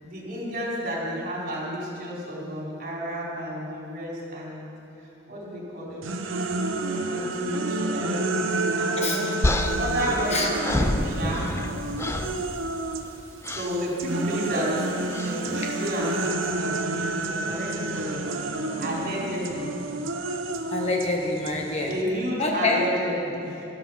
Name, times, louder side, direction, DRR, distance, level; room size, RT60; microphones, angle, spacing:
voice 1, 0.0-4.6 5.3-6.1 7.1-9.3 9.8-11.5 13.5-14.9 15.2-18.3 18.8-19.8 21.8-23.6, equal, 50° right, -4 dB, 4.1 m, -31 dB
sound 1, 6.0-13.1 13.4-22.0, right 2 dB, 85° right, 0.9 m, -29 dB
sound 2, 9.4-11.7 12.0-12.4 13.4-13.8 15.1-15.4, left 1 dB, 15° left, 0.5 m, -27 dB
voice 2, 20.7-21.9 22.4-22.8, left 2 dB, 35° left, 0 dB, 1.5 m, -26 dB
13.5 x 13.0 x 5.7 m, 2.8 s
head